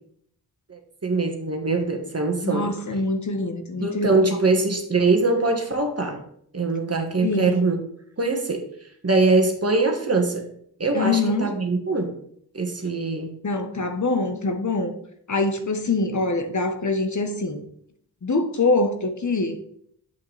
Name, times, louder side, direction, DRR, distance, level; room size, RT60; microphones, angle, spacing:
voice 1, 0.7-2.7 3.8-6.2 6.5-7.8 8.2-8.6 9.0-10.4 10.8-12.2 12.5-13.3, right 3 dB, 35° right, 4 dB, 1.5 m, -22 dB
voice 2, 2.4-4.2 7.2-7.6 10.9-11.5 13.4-14.9 15.3-17.6 18.2-19.6, left 3 dB, 45° left, 6 dB, 1.1 m, -24 dB
8.2 x 5.7 x 3.3 m, 0.66 s
cardioid pair, 60°, 40 cm